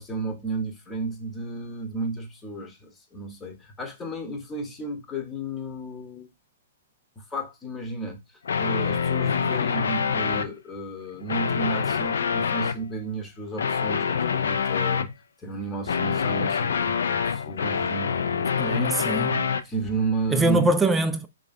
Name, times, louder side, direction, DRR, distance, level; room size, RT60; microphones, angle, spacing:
voice 1, 0.0-6.3 7.2-15.1 15.4-18.8 19.6-20.7, right 2 dB, 15° left, 0.9 m, -33 dB
sound 1, 8.5-10.5 11.2-12.8 13.6-15.1 15.9-19.6, left 6 dB, 60° left, 0.4 m, -25 dB
voice 2, 18.6-19.5 20.3-21.3, right 2 dB, 10° right, 0.3 m, -23 dB
4.9 x 2.5 x 2.5 m
figure-of-eight pair, 120°, 0 cm